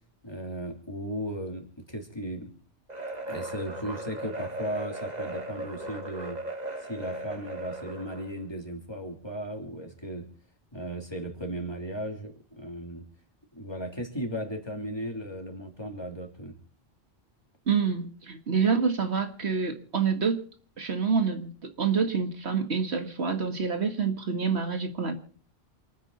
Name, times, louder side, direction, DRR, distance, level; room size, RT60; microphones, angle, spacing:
voice 1, 0.2-2.5 3.3-6.4 6.8-10.2 10.7-13.0 13.5-16.6, right 1 dB, 25° left, 1 dB, 3.4 m, -36 dB
sound 1, 2.9-8.3, right 1 dB, 40° right, 1.8 m, -37 dB
voice 2, 17.7-20.5 20.8-25.1, right 5 dB, 85° right, 6 dB, 2.0 m, -27 dB
28.0 x 10.0 x 4.2 m, 0.43 s
omnidirectional pair, 1.1 m